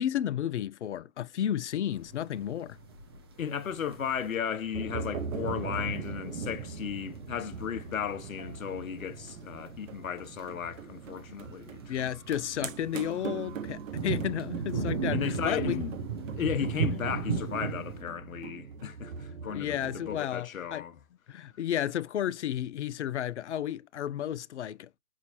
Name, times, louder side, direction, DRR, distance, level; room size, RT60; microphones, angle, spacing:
voice 1, 0.0-2.8 11.9-15.8 19.5-20.8 21.3-24.9, left 10 dB, 55° left, 0.5 m, -32 dB
sound 1, 2.1-18.0, right 5 dB, 20° right, 0.5 m, -37 dB
voice 2, 3.4-11.9 15.1-16.0 16.3-21.0, left 8 dB, 70° left, 0.9 m, -35 dB
sound 2, 4.7-20.2, right 5 dB, 65° right, 0.8 m, -42 dB
6.1 x 2.6 x 2.9 m
hypercardioid pair, 140°, 42 cm